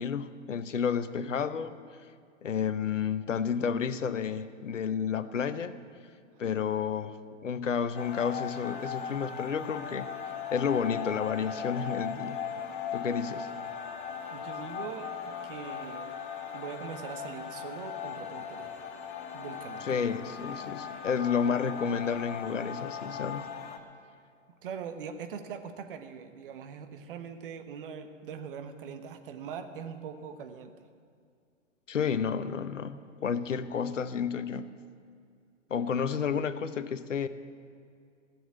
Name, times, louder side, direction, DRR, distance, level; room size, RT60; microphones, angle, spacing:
voice 1, 0.0-1.7 2.4-5.8 6.4-7.1 7.4-10.1 10.5-12.4 12.9-13.5 19.8-23.4 31.9-34.7 35.7-37.3, left 7 dB, 70° left, 13 dB, 0.9 m, -31 dB
sound 1, 8.0-23.8, left 7 dB, 10° left, 0.3 m, -38 dB
voice 2, 14.3-15.1 15.4-16.2 16.5-18.7 19.3-20.0 24.6-30.7, right 7 dB, 45° right, 8 dB, 1.2 m, -42 dB
15.5 x 7.2 x 10.0 m, 2.3 s
figure-of-eight pair, 115°, 38 cm